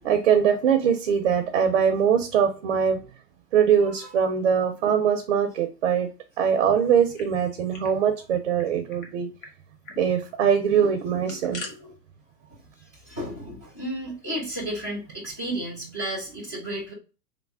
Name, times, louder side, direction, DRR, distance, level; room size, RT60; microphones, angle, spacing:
voice 1, 0.0-3.0 3.5-6.1 6.4-9.3 10.0-11.9, right 7 dB, 45° right, 6 dB, 0.5 m, -22 dB
sound 1, 6.9-8.0 8.2-8.3 8.6-9.1 9.4-9.5 9.8-10.0 11.0-11.7, left 3 dB, 55° left, 1.1 m, -42 dB
voice 2, 13.1-16.9, right 1 dB, 10° left, -9 dB, 0.3 m, -32 dB
3.2 x 2.0 x 3.4 m, 0.33 s
hypercardioid pair, 120°, 49 cm